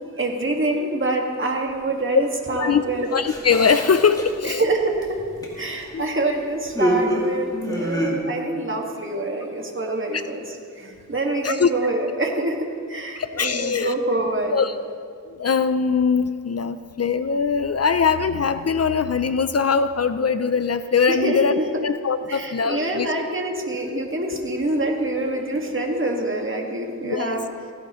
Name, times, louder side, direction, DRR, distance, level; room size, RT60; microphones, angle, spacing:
voice 1, 0.2-3.1 4.4-5.2 5.6-14.6 21.1-21.7 22.2-27.5, right 2 dB, 40° right, 1 dB, 1.8 m, -26 dB
sound 1, 2.8-4.6 5.0-6.0 6.7-8.1, equal, 10° left, 2.4 m, -26 dB
voice 2, 3.1-4.6 5.9-6.0 10.1-10.2 11.4-11.7 13.2-13.9 14.5-14.8 15.3-21.5 21.8-23.1 23.9-24.0 27.0-27.4, left 5 dB, 50° left, 12 dB, 0.5 m, -21 dB
16.5 x 15.0 x 3.1 m, 2.2 s
wide cardioid pair, 70°, 32 cm